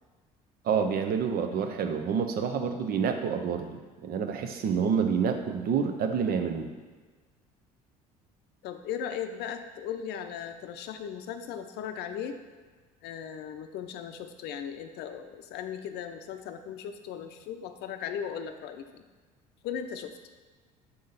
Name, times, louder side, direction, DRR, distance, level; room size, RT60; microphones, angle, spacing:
voice 1, 0.6-6.7, right 6 dB, 50° right, 6 dB, 0.7 m, -28 dB
voice 2, 8.6-12.4 13.0-19.0 19.6-20.2, left 8 dB, 60° left, 8 dB, 0.6 m, -37 dB
6.9 x 3.7 x 4.0 m, 1.4 s
hypercardioid pair, 65°, 20 cm